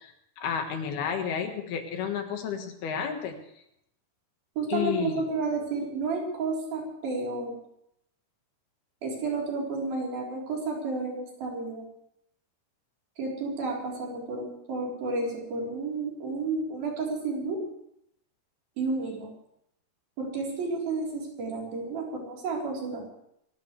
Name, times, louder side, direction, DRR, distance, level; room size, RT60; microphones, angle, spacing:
voice 1, 0.0-3.4 4.7-5.3, left 8 dB, 70° left, 5 dB, 3.4 m, -31 dB
voice 2, 4.6-7.5 9.0-11.9 13.2-17.6 18.8-19.3 20.2-23.1, right 3 dB, 60° right, -2 dB, 5.6 m, -31 dB
26.5 x 15.5 x 3.3 m, 0.74 s
omnidirectional pair, 4.8 m